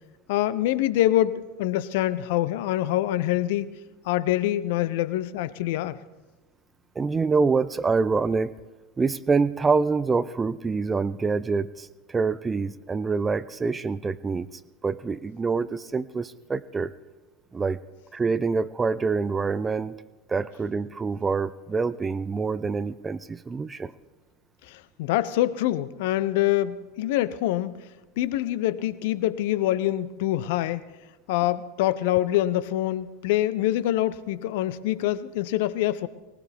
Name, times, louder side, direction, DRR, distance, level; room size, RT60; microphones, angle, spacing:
voice 1, 0.3-3.7 4.0-6.0 24.7-27.9 28.2-30.8 31.3-36.1, left 14 dB, 60° left, 16 dB, 0.7 m, -25 dB
voice 2, 7.0-8.5 9.0-14.5 14.8-16.9 17.5-17.8 18.1-20.0 20.3-23.9, right 4 dB, 20° right, 16 dB, 0.5 m, -26 dB
19.5 x 19.0 x 3.5 m, 1.2 s
figure-of-eight pair, 85°, 0 cm